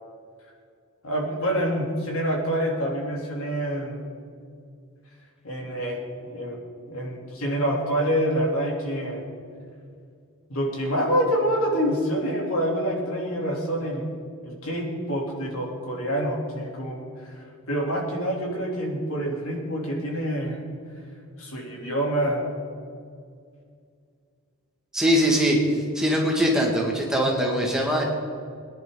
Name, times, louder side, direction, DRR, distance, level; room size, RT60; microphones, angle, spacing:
voice 1, 1.0-4.0 5.4-6.6 6.9-9.2 10.5-14.1 14.4-17.4 17.7-20.6 21.4-22.4, equal, 75° left, -2 dB, 2.9 m, -26 dB
voice 2, 24.9-28.0, equal, 5° right, -2 dB, 1.9 m, -22 dB
21.5 x 10.5 x 3.8 m, 2.3 s
head